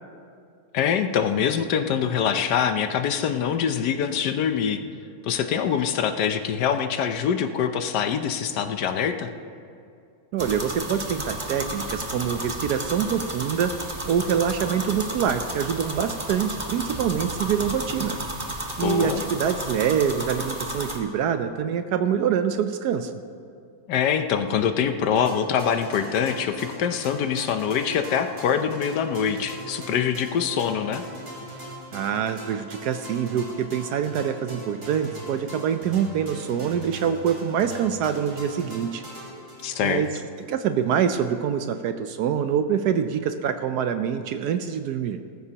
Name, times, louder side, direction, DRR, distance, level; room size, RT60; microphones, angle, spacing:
voice 1, 0.7-4.8 5.2-9.3 18.8-19.2 23.9-31.0 39.6-40.0, left 8 dB, 70° left, 8 dB, 1.2 m, -24 dB
voice 2, 10.3-13.8 14.0-18.2 18.8-23.1 31.9-39.0 39.8-40.1 40.4-45.2, right 8 dB, 70° right, 9 dB, 1.0 m, -25 dB
sound 1, 10.4-21.0, right 1 dB, 20° right, 1.0 m, -33 dB
sound 2, 25.2-40.6, equal, 45° right, 3.3 m, -41 dB
18.5 x 14.0 x 2.9 m, 2.4 s
omnidirectional pair, 2.0 m